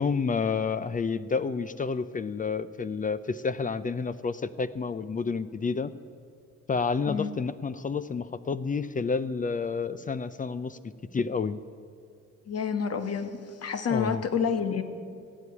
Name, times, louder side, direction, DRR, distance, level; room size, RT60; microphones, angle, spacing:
voice 1, 0.0-5.9 6.7-10.8 11.1-11.6 13.9-14.2, left 5 dB, 25° left, 15 dB, 0.5 m, -29 dB
voice 2, 12.5-14.8, left 6 dB, 55° left, 9 dB, 1.3 m, -29 dB
15.5 x 8.4 x 9.9 m, 2.3 s
cardioid pair, 90°, 30 cm